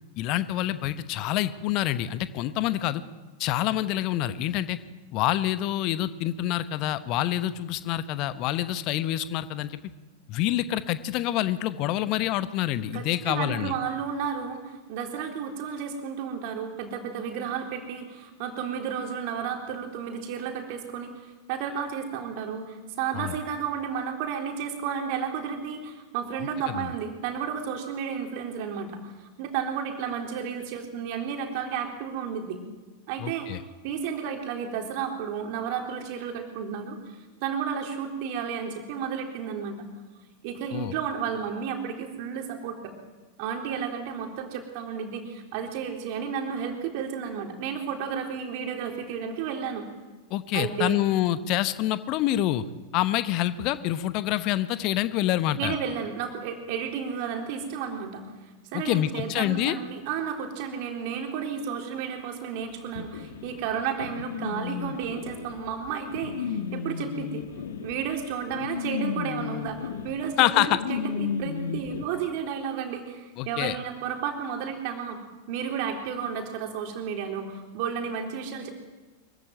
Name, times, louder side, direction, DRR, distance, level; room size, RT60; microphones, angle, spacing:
voice 1, 0.2-3.0 3.4-4.8 5.1-9.8 10.3-13.7 23.1-23.3 26.7-26.9 33.2-33.6 40.7-40.9 50.3-52.6 52.9-55.7 58.7-59.8 70.4-70.8 73.4-73.8, left 13 dB, 40° left, 13 dB, 1.0 m, -26 dB
voice 2, 12.9-29.1 29.4-32.6 33.1-33.5 33.8-37.0 37.4-39.8 40.4-43.0 43.4-49.9 50.5-51.0 55.6-58.2 58.7-67.5 67.8-75.2 75.5-78.7, right 7 dB, 45° right, 3 dB, 3.7 m, -32 dB
sound 1, 62.9-72.0, left 7 dB, 60° left, 1.5 m, -34 dB
24.0 x 15.5 x 9.1 m, 1.3 s
figure-of-eight pair, 90°, 0 cm